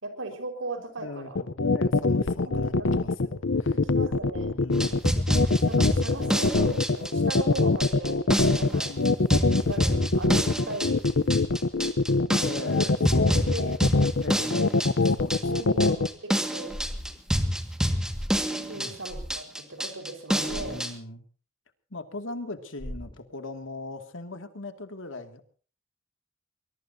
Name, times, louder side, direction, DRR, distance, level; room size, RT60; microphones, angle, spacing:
voice 1, 0.0-1.4 2.5-2.9 3.7-4.5 5.3-8.2 8.6-8.9 9.7-11.0 12.7-12.8 13.2-13.7 15.4-16.7 18.5-20.8, right 2 dB, 85° right, 5 dB, 4.8 m, -37 dB
voice 2, 1.0-3.8 4.4-5.0 8.8-9.4 12.2-13.5 14.2-14.7 15.0-15.5 18.7-19.0 20.6-21.2 21.9-25.4, left 2 dB, 85° left, 7 dB, 2.3 m, -40 dB
sound 1, 1.4-16.1, left 3 dB, 65° left, 0.8 m, -23 dB
sound 2, 4.7-20.9, equal, 5° right, 1.8 m, -28 dB
sound 3, 16.7-17.6 18.1-18.5 19.1-19.4 20.5-20.8 22.8-23.2, equal, 25° left, 1.6 m, -38 dB
23.5 x 21.0 x 2.8 m, 0.40 s
head